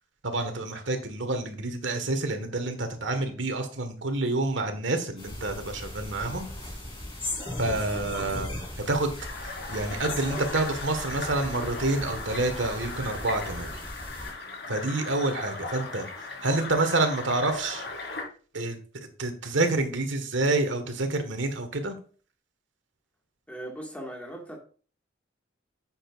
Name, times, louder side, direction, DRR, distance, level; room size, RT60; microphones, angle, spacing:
voice 1, 0.2-6.5 7.6-8.5 8.8-9.1 9.4-13.7 14.7-17.8 18.5-22.0, right 2 dB, 90° right, 1.6 m, -28 dB
sound 1, 5.2-14.3, left 1 dB, 25° left, 3.8 m, -38 dB
sound 2, 9.2-18.2, left 3 dB, 65° left, 3.9 m, -37 dB
voice 2, 23.5-24.6, right 1 dB, 5° left, 1.8 m, -38 dB
10.5 x 7.7 x 2.5 m
head